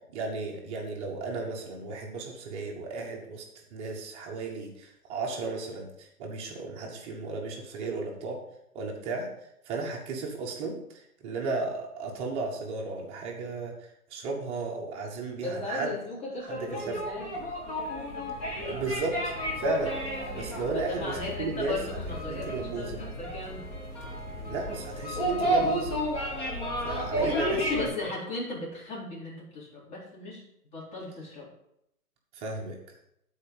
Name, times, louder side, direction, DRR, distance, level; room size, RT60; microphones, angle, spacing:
voice 1, 0.1-3.4 3.7-8.4 8.7-9.3 9.6-15.9 16.4-16.6 16.9-17.0 18.6-20.0 20.3-21.8 22.3-23.0 24.5-26.0 26.8-27.5 32.3-32.8, right 3 dB, 15° right, -1 dB, 1.1 m, -34 dB
voice 2, 15.4-17.3 20.7-23.6 27.1-30.4 30.7-31.5, left 2 dB, 30° left, -5 dB, 4.1 m, -35 dB
sound 1, 16.5-27.9, equal, 15° left, 1.1 m, -32 dB
12.0 x 4.5 x 5.3 m, 0.78 s
hypercardioid pair, 150°, 45 cm